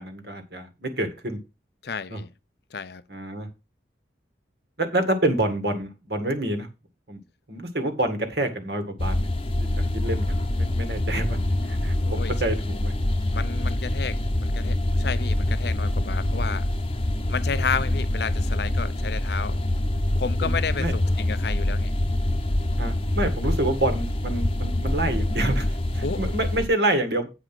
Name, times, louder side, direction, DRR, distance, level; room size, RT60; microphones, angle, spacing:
voice 1, 0.0-1.4 2.1-2.2 3.1-3.5 4.8-6.7 7.1-7.2 7.5-9.3 9.6-9.7 9.9-12.9 19.5-19.6 20.4-20.9 22.8-27.3, right 1 dB, 65° right, 2.0 m, -27 dB
voice 2, 1.8-2.3 2.7-3.0 12.0-12.3 13.3-16.7 17.3-19.6 20.2-21.9 26.0-26.2, left 5 dB, 60° left, 0.6 m, -31 dB
sound 1, 9.0-26.6, left 1 dB, 30° left, 0.9 m, -25 dB
8.7 x 5.0 x 6.0 m
head